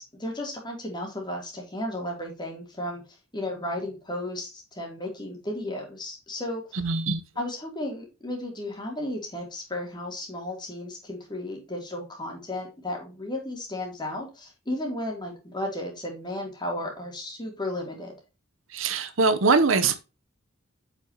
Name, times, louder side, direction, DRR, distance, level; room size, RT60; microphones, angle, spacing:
voice 1, 0.0-3.0 3.3-6.8 7.4-18.2, left 1 dB, 20° left, 3.0 m, -34 dB
voice 2, 6.7-7.2 18.7-19.9, right 4 dB, 75° right, 0.9 m, -22 dB
7.6 x 6.0 x 2.9 m
head